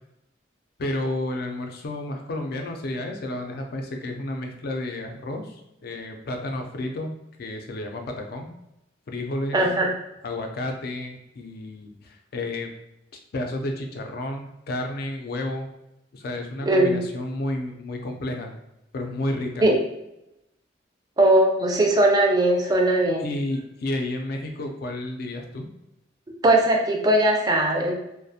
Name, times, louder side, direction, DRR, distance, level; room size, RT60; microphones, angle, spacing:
voice 1, 0.8-7.1 7.4-8.5 9.1-9.6 10.2-12.7 13.3-15.7 16.1-18.6 18.9-19.6 23.2-25.7, left 1 dB, 55° left, 3 dB, 0.4 m, -31 dB
voice 2, 9.5-9.9 16.6-17.0 19.6-19.8 21.2-23.3 26.4-27.9, right 1 dB, 20° right, 1 dB, 0.3 m, -19 dB
2.4 x 2.1 x 2.6 m, 0.88 s
head